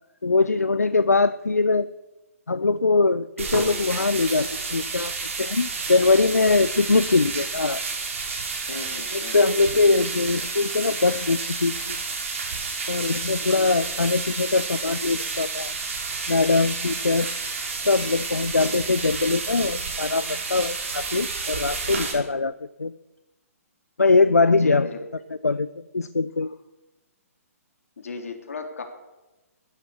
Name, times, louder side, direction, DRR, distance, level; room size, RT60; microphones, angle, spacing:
voice 1, 0.2-1.9 2.5-7.8 9.1-12.0 12.9-15.7 16.3-17.3 17.8-22.9 24.0-24.9 25.4-25.7 25.9-26.5, left 3 dB, 85° left, 15 dB, 0.5 m, -22 dB
sound 1, 3.4-22.1, right 4 dB, 60° right, 5.2 m, -30 dB
voice 2, 8.7-9.4 13.4-13.8 24.6-25.0 28.0-28.8, left 4 dB, 65° left, 4 dB, 3.2 m, -36 dB
14.0 x 10.5 x 7.0 m, 1.1 s
figure-of-eight pair, 130°, 8 cm